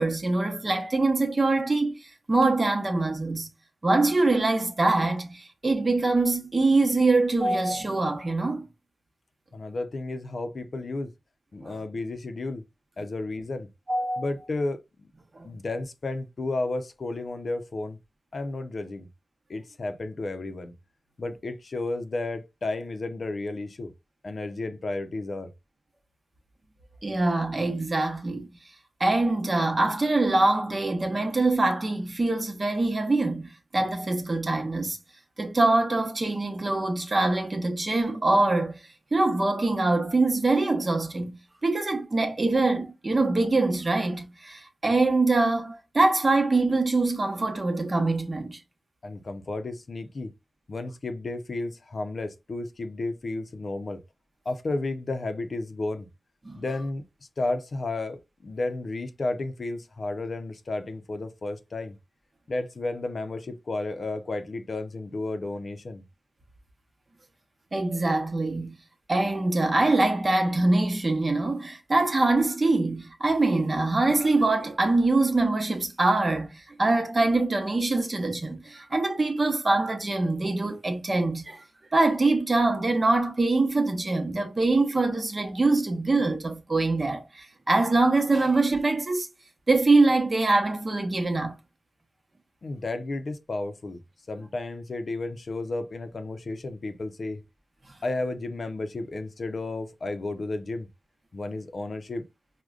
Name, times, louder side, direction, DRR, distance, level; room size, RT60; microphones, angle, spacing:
voice 1, 0.0-3.5 3.8-8.6 11.6-11.8 13.9-14.2 15.4-15.5 27.0-28.5 29.0-35.0 35.4-38.8 39.1-48.6 56.4-56.6 67.7-68.7 69.1-81.6 81.9-89.3 89.7-91.6, right 2 dB, 40° right, 0.8 m, -24 dB
voice 2, 9.5-11.1 11.5-12.6 13.0-13.7 14.2-15.1 15.4-18.0 18.3-19.1 19.5-20.7 21.2-23.9 24.2-25.5 49.0-50.3 50.7-54.0 54.5-56.1 56.6-57.0 57.4-62.0 62.5-66.0 92.6-94.0 94.3-97.4 98.0-100.9 101.3-102.2, left 2 dB, 65° left, 0.5 m, -32 dB
4.8 x 2.1 x 2.4 m
wide cardioid pair, 85°, 0 cm